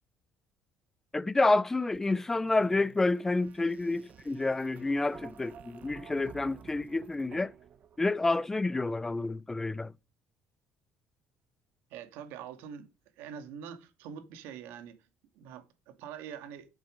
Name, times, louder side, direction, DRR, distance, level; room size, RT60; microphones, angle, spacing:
voice 1, 1.1-7.5 8.0-9.9, left 2 dB, 10° left, 0.5 m, -29 dB
sound 1, 1.9-8.7, right 8 dB, 45° right, 1.1 m, -53 dB
voice 2, 11.9-12.9 13.2-15.0 15.3-16.7, right 8 dB, 85° right, 2.3 m, -44 dB
10.5 x 8.6 x 6.3 m
cardioid pair, 155°, 4 cm